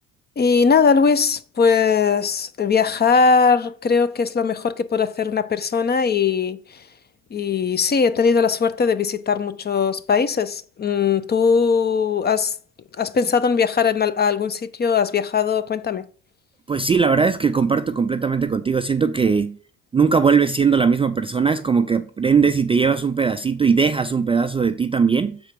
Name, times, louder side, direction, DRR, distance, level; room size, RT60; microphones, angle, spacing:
voice 1, 0.4-6.6 7.3-12.5 13.0-16.0, left 5 dB, 30° left, 0.6 m, -20 dB
voice 2, 16.7-19.6 19.9-25.4, right 5 dB, 15° right, 0.3 m, -19 dB
6.8 x 4.4 x 5.1 m
cardioid pair, 100°, 34 cm